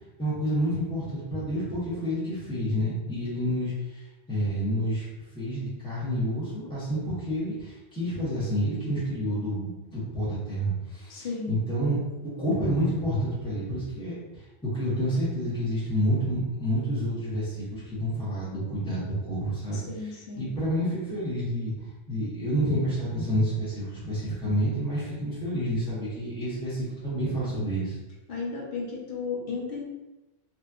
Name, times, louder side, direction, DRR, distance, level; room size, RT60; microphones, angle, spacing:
voice 1, 0.2-5.1 5.3-12.0 12.2-28.0, equal, 5° left, -11 dB, 1.2 m, -29 dB
voice 2, 11.1-11.5 19.7-20.5 28.3-29.8, left 4 dB, 55° left, -4 dB, 1.0 m, -34 dB
3.1 x 2.8 x 2.5 m, 1.1 s
omnidirectional pair, 1.2 m